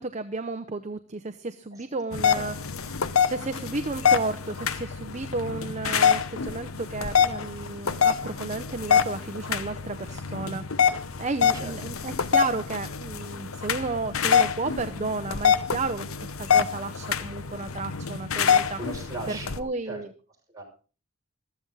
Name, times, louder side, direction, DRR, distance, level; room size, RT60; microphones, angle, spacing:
voice 1, 0.0-2.6 2.9-16.1 16.4-18.8 19.6-20.1, right 3 dB, 35° right, 9 dB, 0.8 m, -33 dB
sound 1, 2.1-19.6, left 7 dB, 80° left, 0.9 m, -25 dB
voice 2, 18.8-20.0 20.5-20.6, right 2 dB, 15° right, -1 dB, 6.1 m, -38 dB
15.0 x 14.0 x 4.0 m, 0.36 s
head